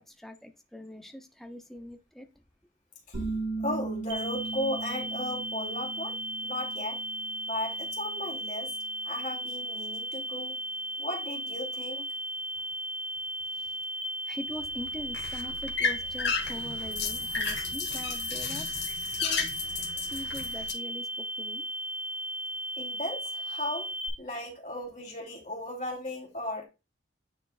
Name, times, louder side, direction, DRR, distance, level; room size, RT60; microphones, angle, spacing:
voice 1, 0.0-2.3 14.3-18.9 19.2-19.5 20.1-21.6, left 1 dB, ahead, 0.6 m, -43 dB
sound 1, 3.1-8.5, right 3 dB, 85° right, 4.0 m, -38 dB
voice 2, 3.6-6.2 6.4-7.0 7.5-8.7 9.0-10.5 11.0-12.1 22.8-26.7, left 1 dB, 40° left, 2.6 m, -36 dB
sound 2, 4.1-24.1, right 1 dB, 60° right, 1.7 m, -36 dB
sound 3, 14.5-20.7, left 5 dB, 65° left, 1.4 m, -34 dB
9.3 x 4.2 x 2.4 m
head